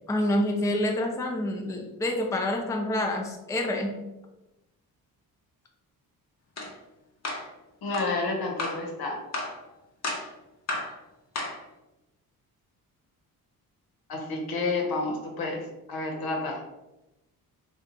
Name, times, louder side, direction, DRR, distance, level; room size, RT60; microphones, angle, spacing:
voice 1, 0.1-3.9, left 1 dB, 10° left, 2 dB, 0.4 m, -27 dB
sound 1, 6.6-6.7 7.2-7.5 7.9-8.1 8.6-8.8 9.3-9.6 10.0-10.3 10.7-10.9 11.4-11.6, left 2 dB, 45° left, 0.8 m, -32 dB
voice 2, 7.8-9.2 14.1-16.6, left 3 dB, 75° left, 1 dB, 0.9 m, -30 dB
2.9 x 2.3 x 3.7 m, 0.96 s
cardioid pair, 100°, 38 cm